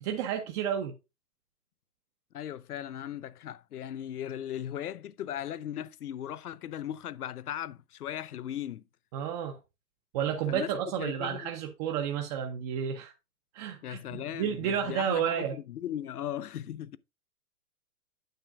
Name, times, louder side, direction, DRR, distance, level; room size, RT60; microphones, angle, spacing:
voice 1, 0.0-0.9 9.1-9.6 10.1-13.1 13.5-15.6, right 8 dB, 25° right, 0.7 m, -31 dB
voice 2, 2.3-8.8 10.5-10.7 11.0-11.5 13.8-17.0, left 11 dB, 85° left, 0.6 m, -37 dB
9.2 x 6.6 x 2.4 m
hypercardioid pair, 130°, 44 cm